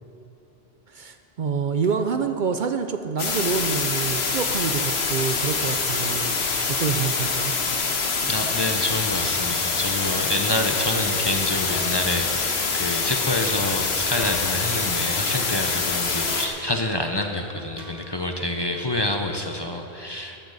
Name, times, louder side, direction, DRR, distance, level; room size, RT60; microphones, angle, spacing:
voice 1, 0.9-6.4 6.7-7.5, right 6 dB, 60° right, 7 dB, 0.7 m, -27 dB
sound 1, 1.8-1.9 2.5-2.7 3.5-3.6 4.5-4.6 5.6-5.7 6.8-7.1 8.4-8.9 10.0-10.9 11.7-12.2 12.7-12.8 13.1-13.3 14.2-15.0 16.3-16.9 17.8-18.4 18.7-18.8, equal, 40° right, 1.5 m, -42 dB
sound 2, 3.2-16.5, left 4 dB, 80° left, 1.3 m, -25 dB
voice 2, 8.3-20.4, left 1 dB, 30° left, 3 dB, 0.7 m, -27 dB
14.0 x 13.0 x 4.0 m, 2.9 s
omnidirectional pair, 1.0 m